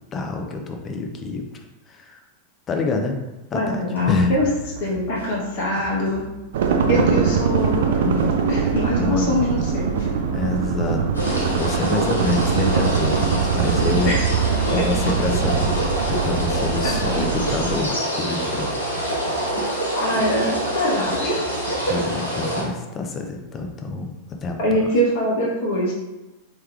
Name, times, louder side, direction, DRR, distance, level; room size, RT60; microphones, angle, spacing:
voice 1, 0.1-1.4 1.9-2.2 2.7-3.2 3.5-3.8 4.1-4.3 6.8-7.2 8.9-9.3 10.3-11.0 11.4-14.1 14.6-18.7 19.0-19.8 21.9-24.6, left 3 dB, 25° left, 3 dB, 0.5 m, -27 dB
voice 2, 3.5-4.5 4.8-6.2 6.9-9.9 14.0-14.1 14.7-15.0 16.8-17.2 20.0-20.5 20.7-21.9 24.6-25.9, left 1 dB, 50° left, -4 dB, 1.0 m, -23 dB
sound 1, 4.0-8.3 8.8-13.1 13.6-17.9 18.4-22.7, right 1 dB, 80° right, 1.0 m, -38 dB
sound 2, 6.5-17.8, right 6 dB, 60° right, 0.3 m, -22 dB
sound 3, 11.1-22.6, right 1 dB, 85° left, 0.9 m, -26 dB
3.4 x 3.3 x 2.3 m, 1.1 s
figure-of-eight pair, 90°, 0 cm